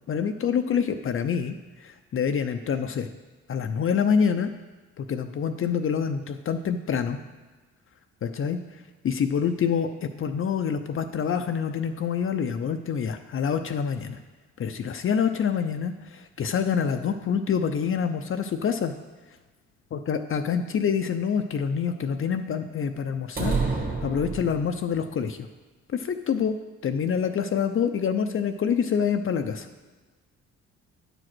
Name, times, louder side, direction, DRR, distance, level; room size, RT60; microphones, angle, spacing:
voice 1, 0.1-1.5 1.8-3.1 3.5-4.5 5.0-7.2 8.2-8.6 9.0-14.2 14.6-18.9 19.9-25.5 25.9-26.6 26.8-29.7, left 7 dB, 45° left, 7 dB, 0.6 m, -26 dB
sound 1, 23.4-25.0, right 4 dB, 30° right, 1.7 m, -28 dB
9.7 x 5.0 x 6.1 m, 1.3 s
cardioid pair, 90°, 30 cm